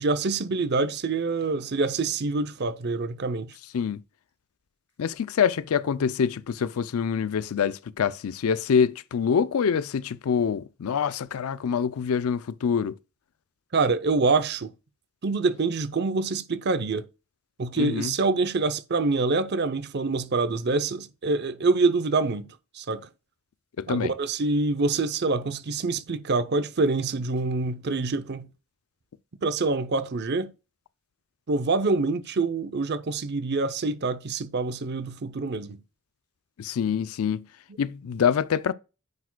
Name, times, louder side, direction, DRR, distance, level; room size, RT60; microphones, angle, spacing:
voice 1, 0.0-3.5 13.7-14.7 15.2-17.1 17.6-23.1 23.9-28.5 29.4-30.5 31.5-35.8, right 3 dB, 50° right, 0.6 m, -26 dB
voice 2, 5.0-12.9 17.8-18.1 23.8-24.1 36.6-37.4 37.8-38.7, left 7 dB, 80° left, 0.4 m, -25 dB
9.4 x 4.8 x 2.2 m
head